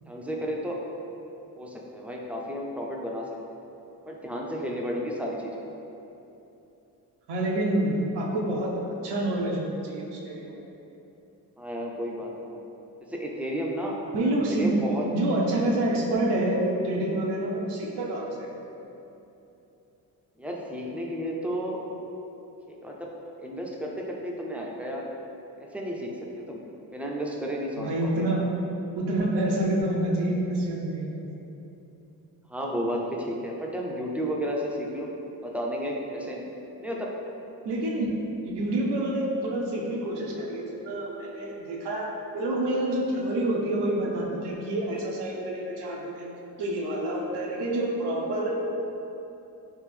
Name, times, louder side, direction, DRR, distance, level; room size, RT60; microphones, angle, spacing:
voice 1, 0.1-0.8 1.6-3.3 4.1-5.5 11.6-12.6 13.1-14.0 14.5-15.1 20.4-21.8 22.7-23.1 23.4-25.0 25.6-26.1 26.4-26.6 26.9-28.3 32.5-35.1 35.4-36.4 36.8-37.1, equal, 5° right, -2 dB, 0.4 m, -32 dB
voice 2, 7.3-8.7 9.0-10.6 14.1-14.8 15.1-18.5 27.8-28.6 29.0-31.3 37.6-46.3 46.6-48.6, right 1 dB, 85° right, -2 dB, 0.7 m, -27 dB
3.5 x 2.5 x 3.2 m, 2.9 s
cardioid pair, 75°, 40 cm